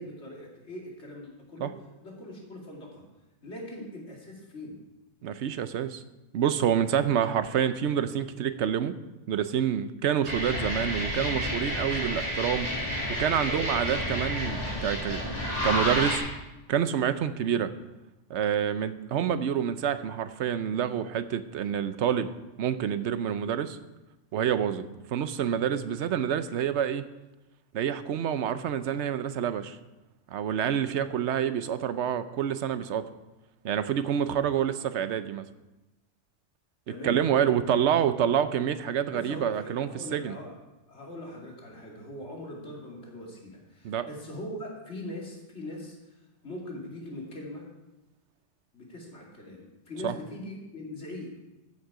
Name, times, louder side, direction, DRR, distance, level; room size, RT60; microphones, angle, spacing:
voice 1, 0.0-1.7 2.0-3.0 3.4-4.8 6.9-7.3 36.9-37.6 39.1-40.6 40.9-47.7 48.7-51.4, left 1 dB, 65° left, -2 dB, 2.7 m, -41 dB
voice 2, 5.2-6.0 6.3-8.9 9.3-12.7 13.1-15.2 15.6-16.2 16.7-17.7 18.3-22.3 22.6-23.8 24.3-24.8 25.1-27.0 27.7-29.8 30.3-33.1 33.6-35.4 36.9-40.4 43.8-44.1 50.0-50.1, right 9 dB, 70° right, 12 dB, 0.9 m, -27 dB
sound 1, 10.3-16.2, left 1 dB, 25° left, 2.3 m, -30 dB
14.5 x 6.5 x 4.8 m, 1.0 s
omnidirectional pair, 1.2 m